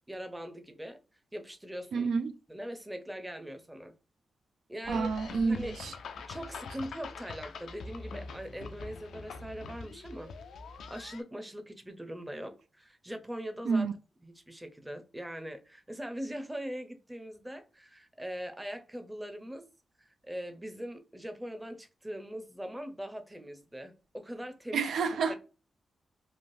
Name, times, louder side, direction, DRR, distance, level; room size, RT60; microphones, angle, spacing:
voice 1, 0.1-1.0 1.3-2.1 2.5-3.9 4.7-5.1 5.4-5.8 6.2-10.3 10.9-13.8 14.2-19.7 20.0-24.9 25.3-25.4, equal, 10° right, 0.6 m, -41 dB
voice 2, 1.9-2.3 4.9-5.9 13.6-13.9 24.7-25.4, right 5 dB, 85° right, 0.4 m, -29 dB
sound 1, 4.8-11.2, left 4 dB, 85° left, 0.4 m, -44 dB
3.1 x 2.4 x 2.6 m
cardioid pair, 95°, 0 cm